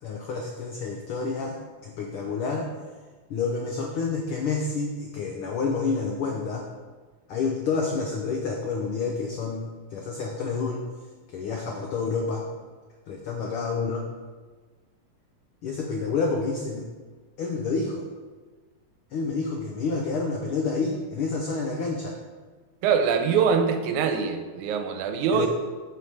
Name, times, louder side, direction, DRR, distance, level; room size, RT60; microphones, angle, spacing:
voice 1, 0.0-2.7 3.3-6.7 7.3-10.8 11.3-12.5 13.1-14.1 15.6-16.9 17.4-18.1 19.1-22.2 25.3-25.5, left 4 dB, 85° left, 1 dB, 1.1 m, -29 dB
voice 2, 22.8-25.5, right 6 dB, 90° right, 6 dB, 2.1 m, -23 dB
8.0 x 5.4 x 5.0 m, 1.4 s
omnidirectional pair, 3.4 m